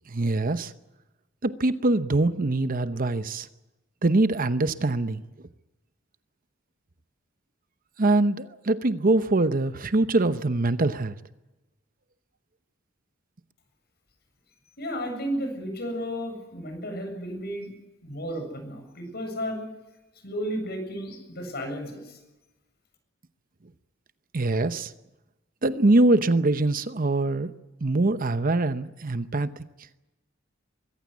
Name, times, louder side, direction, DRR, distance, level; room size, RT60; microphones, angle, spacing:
voice 1, 0.1-0.7 1.4-3.5 4.0-5.2 8.0-11.2 24.3-24.9 25.6-27.5 27.8-29.6, right 2 dB, 45° right, 12 dB, 0.8 m, -23 dB
voice 2, 14.8-17.7 18.0-19.6 20.2-22.2, equal, 55° left, 5 dB, 7.5 m, -33 dB
23.5 x 15.5 x 9.5 m, 1.0 s
head